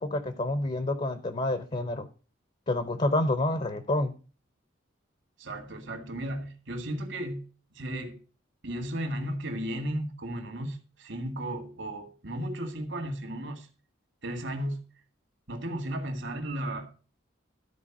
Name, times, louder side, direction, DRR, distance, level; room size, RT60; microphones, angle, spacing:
voice 1, 0.0-2.1 2.7-4.1, left 2 dB, 30° left, 0.7 m, -28 dB
voice 2, 5.4-7.4 7.7-8.2 8.6-13.7 14.2-14.8 15.5-16.9, right 1 dB, 65° right, 2.0 m, -34 dB
13.0 x 4.6 x 5.9 m
head